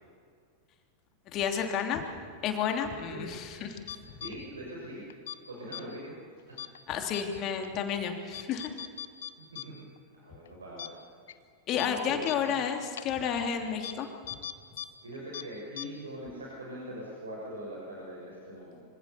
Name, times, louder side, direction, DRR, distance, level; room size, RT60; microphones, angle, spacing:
voice 1, 1.3-2.0 2.4-3.8 6.9-8.7 11.7-14.1, left 7 dB, 35° left, 4 dB, 3.1 m, -31 dB
sound 1, 3.9-4.3 5.1-5.4 5.7-5.8 6.6-6.8 7.1-7.2 7.6-7.7 8.3-9.6 10.0-10.1 10.4-10.5 10.8-10.9 11.3-11.4 11.8-11.9 12.3-12.4 13.0-13.1 13.8-13.9 14.3-14.9 15.1-15.4 15.8-15.9, left 11 dB, 60° left, 1.1 m, -39 dB
voice 2, 4.0-5.0 5.5-6.2 6.5-6.6 9.4-9.9 10.1-11.0 11.7-12.6 15.0-18.8, equal, 75° right, -3 dB, 6.4 m, -42 dB
26.0 x 25.5 x 7.0 m, 2.2 s
figure-of-eight pair, 90°, 0 cm